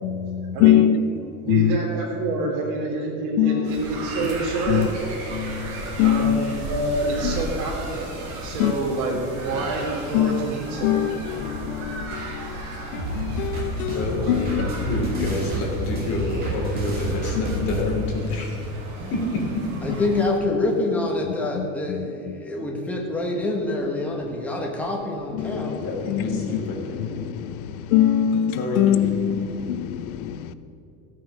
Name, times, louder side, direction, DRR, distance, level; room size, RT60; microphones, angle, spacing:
voice 1, 0.0-1.1 1.5-1.8 3.4-3.8 4.7-4.9 5.3-6.6 7.2-7.3 8.6-8.7 10.1-10.5 10.8-14.7 15.2-15.3 17.5-17.7 21.6-22.4 25.3-25.8 26.1-26.5 26.9-30.5, left 11 dB, 80° left, 0.8 m, -23 dB
voice 2, 0.5-0.8 1.4-4.9 6.0-8.1 8.4-11.0, right 2 dB, 65° right, 3.4 m, -27 dB
sound 1, 3.6-20.3, right 2 dB, 40° right, 2.5 m, -35 dB
sound 2, 13.0-17.8, right 1 dB, 20° right, 2.2 m, -29 dB
voice 3, 13.9-18.6 19.1-19.2 25.5-27.3 28.6-29.1, left 2 dB, 35° left, 3.2 m, -28 dB
voice 4, 19.8-25.7, left 2 dB, 5° left, 1.1 m, -26 dB
14.5 x 8.6 x 6.4 m
cardioid pair, 175°, 42 cm